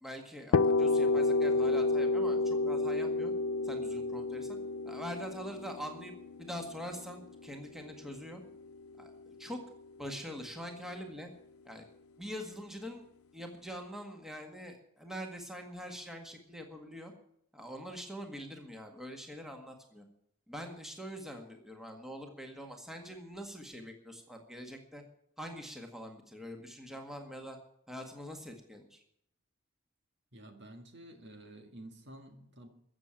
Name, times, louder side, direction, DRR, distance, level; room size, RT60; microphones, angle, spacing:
voice 1, 0.0-3.3 3.6-4.6 4.8-6.1 6.4-8.4 9.0-9.6 10.0-11.3 11.6-11.9 12.2-13.0 13.3-17.1 17.5-20.0 20.5-25.0 25.4-27.6 27.9-29.0, equal, ahead, 3 dB, 1.7 m, -44 dB
sound 1, 0.5-8.2, left 3 dB, 80° left, 0.4 m, -30 dB
voice 2, 30.3-32.7, right 1 dB, 55° right, 5 dB, 1.9 m, -51 dB
14.5 x 7.5 x 8.9 m, 0.73 s
head